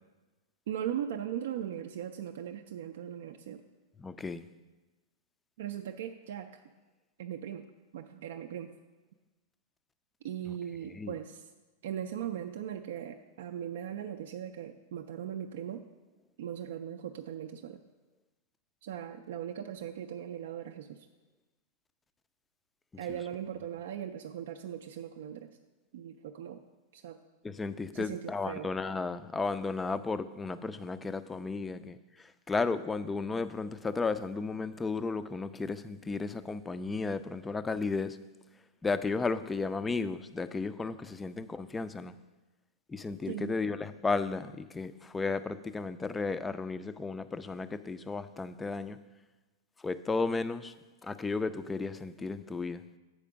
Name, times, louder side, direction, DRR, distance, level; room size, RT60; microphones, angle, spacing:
voice 1, 0.7-3.6 5.6-6.6 7.2-7.6 7.9-8.7 10.2-11.5 11.8-15.8 16.4-17.8 18.8-21.1 23.0-25.6 25.9-26.6 26.9-27.2 27.9-28.7 43.3-43.5, right 10 dB, 60° right, 5 dB, 0.4 m, -39 dB
voice 2, 4.0-4.5 10.9-11.2 23.1-23.2 27.4-32.0 32.5-38.2 38.8-42.1 42.9-49.0 49.8-50.7 51.0-52.8, left 4 dB, 15° left, 12 dB, 0.4 m, -34 dB
7.5 x 4.9 x 6.1 m, 1.2 s
figure-of-eight pair, 95°, 0 cm